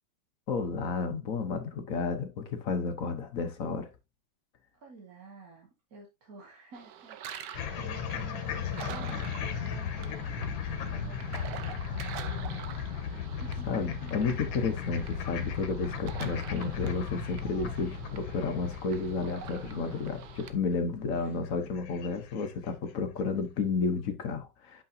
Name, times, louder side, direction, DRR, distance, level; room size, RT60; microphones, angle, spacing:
voice 1, 0.5-3.9 13.7-24.8, left 4 dB, 55° left, 1.1 m, -32 dB
voice 2, 4.7-14.2 21.1-21.4, right 3 dB, 50° right, 2.2 m, -52 dB
sound 1, 6.7-20.5, right 9 dB, 70° right, 1.3 m, -46 dB
sound 2, 7.5-22.9, left 7 dB, 90° left, 1.7 m, -36 dB
8.1 x 5.9 x 2.7 m
omnidirectional pair, 2.1 m